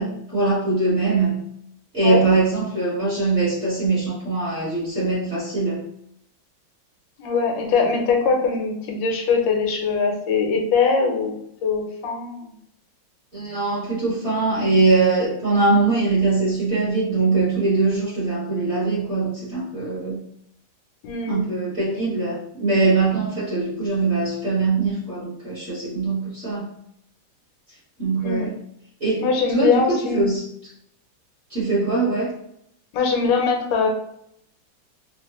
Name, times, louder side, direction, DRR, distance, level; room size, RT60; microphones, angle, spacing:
voice 1, 0.0-1.4 1.9-5.8 13.3-20.2 21.3-26.7 28.0-28.6 29.0-30.4 31.5-32.3, right 3 dB, 40° right, -8 dB, 1.3 m, -22 dB
voice 2, 7.2-11.3 11.6-12.5 21.0-21.5 28.2-28.5 29.2-30.3 32.9-33.9, left 5 dB, 75° left, 2 dB, 1.4 m, -22 dB
3.5 x 2.2 x 2.9 m, 0.73 s
omnidirectional pair, 2.1 m